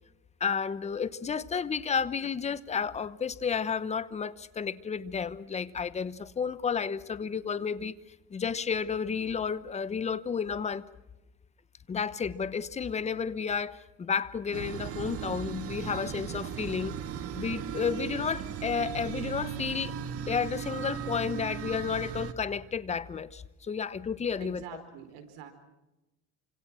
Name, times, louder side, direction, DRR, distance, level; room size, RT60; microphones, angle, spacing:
voice 1, 0.4-7.9 8.3-10.8 11.9-17.0 17.3-19.9 20.3-24.6, left 6 dB, 20° left, 1.0 m, -32 dB
sound 1, 14.5-22.3, right 8 dB, 45° right, 1.8 m, -37 dB
voice 2, 24.4-25.5, right 8 dB, 85° right, 4.7 m, -45 dB
28.0 x 26.0 x 6.3 m
cardioid pair, 140°, 31 cm